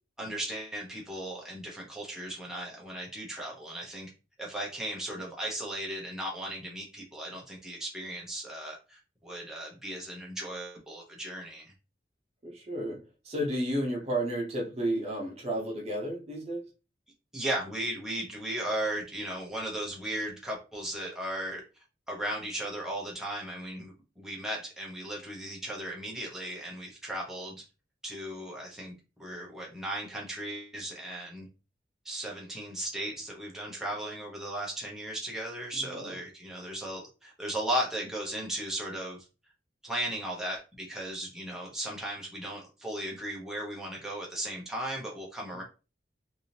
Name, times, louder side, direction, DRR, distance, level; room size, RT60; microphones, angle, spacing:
voice 1, 0.2-4.1 4.4-11.7 17.3-21.6 22.1-27.6 28.0-28.9 29.2-31.5 32.0-39.2 39.8-45.6, right 1 dB, 5° right, 0.8 m, -36 dB
voice 2, 12.4-16.7 35.8-36.1, right 1 dB, 35° right, 0.8 m, -32 dB
3.4 x 2.6 x 2.8 m
head